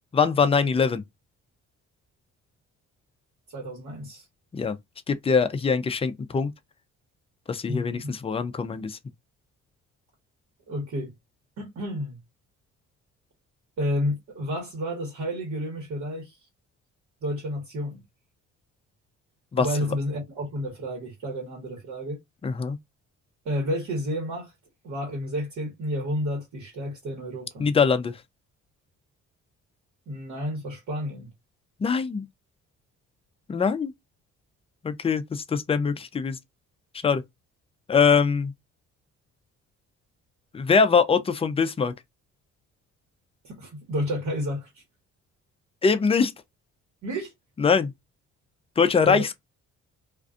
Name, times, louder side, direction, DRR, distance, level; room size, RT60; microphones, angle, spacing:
voice 1, 0.1-1.0 4.5-4.8 5.1-6.5 7.5-9.0 19.5-19.9 22.4-22.8 27.6-28.1 31.8-32.2 33.5-33.9 34.8-36.4 37.0-37.2 37.9-38.5 40.5-41.9 45.8-46.3 47.6-47.9 48.8-49.3, left 5 dB, 20° left, 0.4 m, -23 dB
voice 2, 3.5-4.2 7.7-8.2 10.7-11.1 11.6-12.2 13.8-16.3 17.2-18.0 19.6-22.2 23.4-24.5 24.8-27.7 30.1-31.3 43.4-44.7 47.0-47.3 49.0-49.2, equal, 65° right, 1.3 m, -31 dB
2.5 x 2.3 x 2.4 m
cardioid pair, 90°, 30 cm